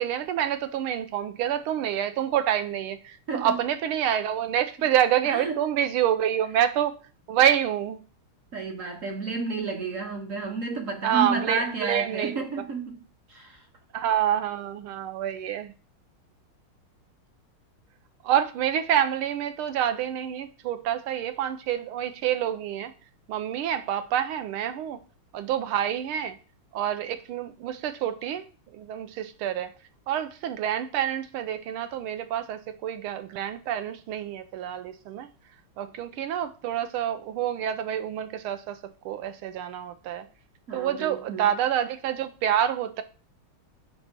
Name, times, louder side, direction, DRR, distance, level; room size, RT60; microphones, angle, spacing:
voice 1, 0.0-6.9 7.3-8.0 11.0-12.5 13.9-15.7 18.2-22.9 23.3-25.0 25.3-26.3 26.7-28.4 28.7-29.7 30.1-35.3 35.8-38.8 39.0-40.3 40.7-43.0, right 10 dB, 85° right, 1.5 m, -27 dB
voice 2, 3.3-3.6 5.3-5.6 8.5-13.0 13.3-13.6 40.7-41.5, right 4 dB, 60° right, 0.9 m, -31 dB
6.9 x 3.4 x 5.8 m
omnidirectional pair, 2.3 m